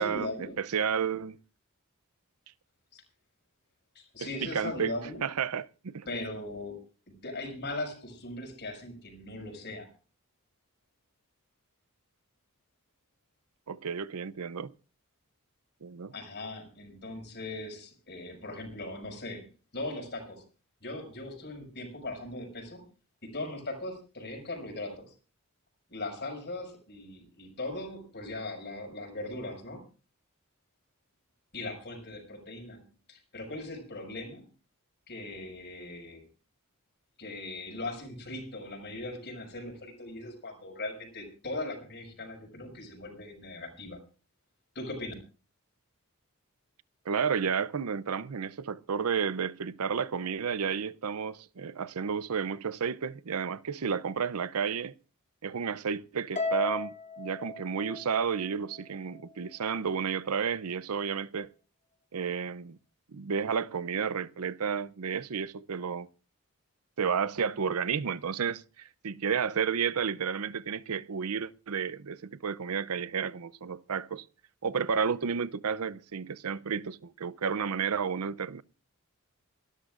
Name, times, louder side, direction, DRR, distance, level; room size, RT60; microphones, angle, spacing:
voice 1, 0.0-0.6 2.9-3.0 3.9-5.2 6.1-9.9 16.1-19.5 19.7-20.4 20.8-22.8 23.2-25.1 25.9-29.8 31.5-34.5 35.1-36.3 37.2-44.0 44.7-45.1, left 2 dB, 50° left, 5.8 m, -39 dB
voice 2, 0.6-1.4 4.2-4.9 5.2-6.1 13.7-14.7 15.8-16.1 47.1-54.9 55.4-61.5 62.1-62.8 63.1-66.1 67.0-74.2 74.6-78.6, right 6 dB, 85° right, 0.6 m, -31 dB
Harp, 56.4-58.8, left 3 dB, 35° left, 2.6 m, -35 dB
28.0 x 13.0 x 2.5 m
head